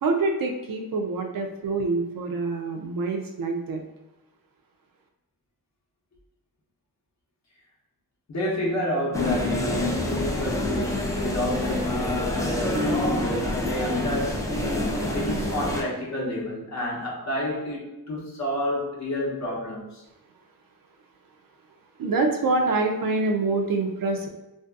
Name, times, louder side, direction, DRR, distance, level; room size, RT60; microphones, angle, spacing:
voice 1, 0.0-3.8 22.0-24.3, right 3 dB, 55° right, 0.5 m, -26 dB
voice 2, 8.3-20.0, left 1 dB, 45° left, 0.7 m, -30 dB
sound 1, 9.1-15.8, left 1 dB, 10° left, 0.4 m, -27 dB
2.6 x 2.4 x 2.3 m
cardioid pair, 85°, 41 cm